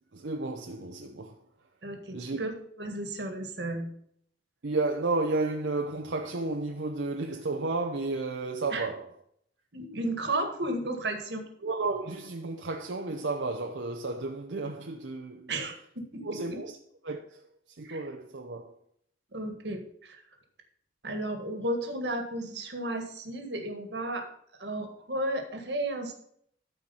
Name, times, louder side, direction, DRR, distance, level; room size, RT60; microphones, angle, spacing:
voice 1, 0.1-1.4 2.1-2.4 4.6-9.1 11.6-15.5 16.2-16.7 17.0-18.8, right 3 dB, 85° right, 0.8 m, -32 dB
voice 2, 1.8-2.5 2.8-3.9 8.7-8.9 9.7-11.4 15.5-16.6 17.8-18.0 19.3-20.2 21.0-24.3 24.6-26.1, right 1 dB, 70° right, 1.7 m, -33 dB
13.5 x 4.6 x 5.5 m
head